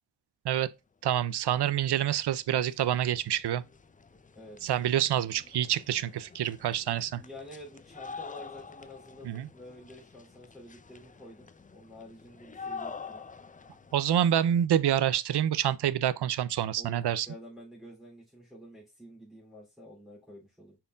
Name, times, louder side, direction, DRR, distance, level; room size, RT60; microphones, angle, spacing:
voice 1, 1.0-3.6 4.6-7.2 9.2-9.5 13.9-17.3, right 10 dB, 65° right, 0.5 m, -27 dB
sound 1, 1.6-1.7 2.0-14.7, left 5 dB, 20° left, 0.4 m, -47 dB
voice 2, 4.3-4.8 7.1-13.2 16.8-20.8, left 1 dB, ahead, 2.9 m, -49 dB
5.2 x 4.4 x 2.3 m
wide cardioid pair, 90°, 44 cm